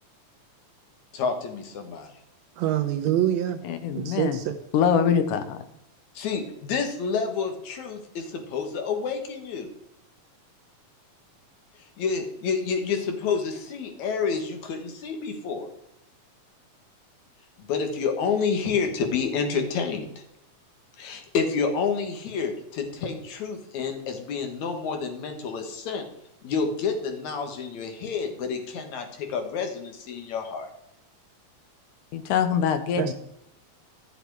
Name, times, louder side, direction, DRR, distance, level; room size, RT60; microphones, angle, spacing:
voice 1, 1.1-2.1 6.2-9.7 12.0-15.7 17.6-20.1 21.0-26.1 26.4-30.7, left 5 dB, 70° left, 5 dB, 2.7 m, -29 dB
voice 2, 2.6-3.6 3.9-4.5 33.0-33.1, right 11 dB, 75° right, 7 dB, 1.7 m, -25 dB
voice 3, 3.6-4.4 4.7-5.7 32.1-33.1, left 7 dB, 85° left, 9 dB, 2.5 m, -24 dB
12.0 x 7.0 x 4.7 m, 0.78 s
omnidirectional pair, 3.6 m